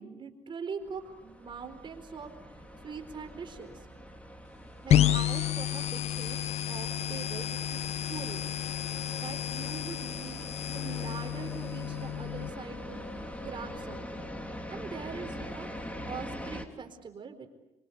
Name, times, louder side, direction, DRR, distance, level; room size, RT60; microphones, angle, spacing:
voice 1, 0.0-2.3 2.8-3.8 4.8-6.4 6.7-8.4 9.2-13.0 13.4-14.3 14.7-15.7 16.1-17.5, right 5 dB, 45° right, 6 dB, 4.3 m, -42 dB
sound 1, 0.8-16.7, equal, 10° left, 3.3 m, -43 dB
sound 2, 4.9-12.5, left 11 dB, 65° left, 1.2 m, -30 dB
25.5 x 24.5 x 8.2 m, 1.0 s
cardioid pair, 100°, 12 cm